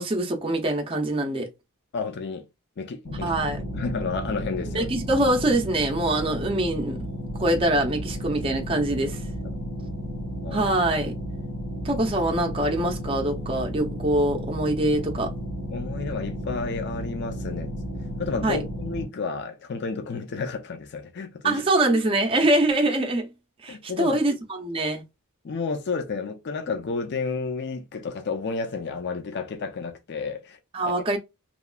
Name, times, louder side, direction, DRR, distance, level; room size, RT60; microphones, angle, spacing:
voice 1, 0.0-1.5 3.2-3.6 4.7-7.0 7.3-9.2 10.5-11.2 11.8-15.3 18.4-18.6 21.4-23.3 23.6-25.0 30.7-31.2, right 1 dB, 25° right, 0.5 m, -24 dB
voice 2, 1.9-2.4 2.8-3.3 3.7-4.9 9.4-9.6 10.4-10.7 15.7-17.7 18.2-21.6 23.7-24.2 25.4-30.6 30.8-31.0, left 4 dB, 50° left, 0.5 m, -31 dB
sound 1, 3.0-19.1, equal, 85° left, 1.6 m, -33 dB
3.0 x 2.3 x 2.2 m
head